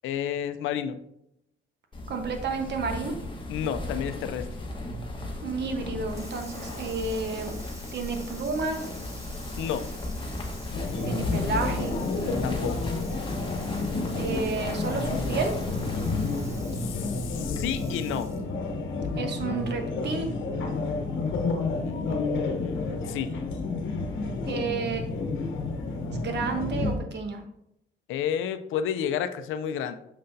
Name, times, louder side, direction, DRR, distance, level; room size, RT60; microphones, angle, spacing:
voice 1, 0.0-1.0 3.5-4.5 9.6-9.9 12.4-12.8 16.8-18.4 21.7-23.3 28.1-29.9, left 9 dB, 90° left, 10 dB, 0.5 m, -31 dB
sound 1, 1.9-17.6, left 1 dB, 25° left, 1.3 m, -36 dB
voice 2, 2.1-3.1 5.4-7.5 7.9-8.9 11.0-11.9 14.1-15.5 19.2-20.3 24.5-25.0 26.1-27.4, right 4 dB, 60° right, 5 dB, 1.1 m, -31 dB
Water tap faucet / Sink (filling or washing), 6.0-18.5, equal, 15° right, 1.3 m, -48 dB
sound 2, 10.7-27.0, left 3 dB, 75° left, 1.0 m, -30 dB
6.5 x 5.7 x 2.7 m, 0.79 s
cardioid pair, 90°, 20 cm